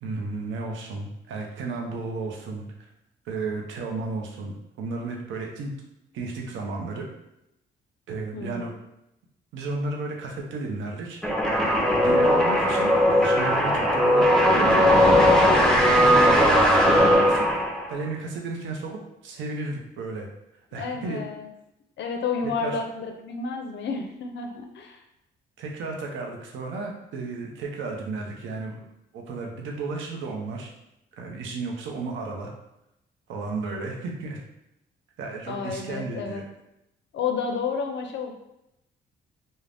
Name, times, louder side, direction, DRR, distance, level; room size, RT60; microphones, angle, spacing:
voice 1, 0.0-2.6 3.2-5.7 6.1-7.1 8.1-8.7 9.5-11.2 11.9-15.0 15.7-20.3 20.7-21.2 22.6-22.8 25.6-28.8 29.1-30.7 31.2-32.5 33.3-34.4 35.2-36.4, right 3 dB, 75° right, 0 dB, 0.6 m, -33 dB
voice 2, 8.3-8.7 20.7-21.5 22.0-25.0 35.5-36.5 37.1-38.3, left 5 dB, 65° left, 4 dB, 0.4 m, -31 dB
sound 1, 11.2-18.0, equal, 5° left, 0.5 m, -19 dB
2.5 x 2.1 x 3.3 m, 0.85 s
cardioid pair, 90°, 20 cm